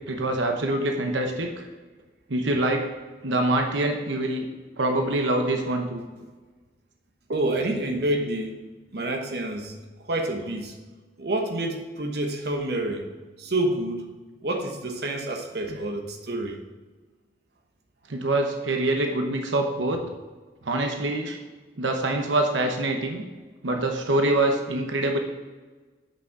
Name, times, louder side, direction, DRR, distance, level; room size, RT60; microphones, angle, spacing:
voice 1, 0.1-1.7 2.3-2.9 3.2-4.5 4.8-6.0 15.7-15.8 18.1-20.0 20.6-21.4 21.8-23.2 23.6-25.2, right 2 dB, 85° right, 3 dB, 1.0 m, -25 dB
voice 2, 7.3-8.5 8.9-9.7 10.1-10.7 11.2-13.0 13.4-14.1 14.4-16.6, right 1 dB, 60° right, 2 dB, 1.1 m, -28 dB
8.1 x 6.3 x 4.7 m, 1.3 s
head